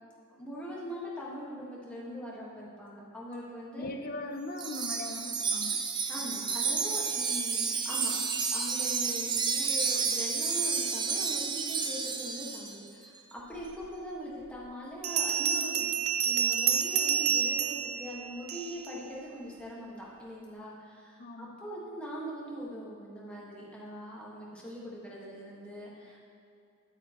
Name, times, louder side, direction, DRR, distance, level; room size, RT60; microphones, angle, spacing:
voice 1, 0.4-3.9 6.1-8.2 8.5-15.9 16.2-26.2, equal, 5° left, -6 dB, 1.5 m, -41 dB
voice 2, 3.8-5.8 21.2-21.5, left 2 dB, 45° left, 4 dB, 0.6 m, -40 dB
Wind chime, 4.6-12.8, right 5 dB, 20° right, 0.4 m, -31 dB
Bell, 13.8-13.9 15.0-18.9, right 8 dB, 75° right, 0.5 m, -29 dB
9.9 x 8.6 x 3.0 m, 2.5 s
head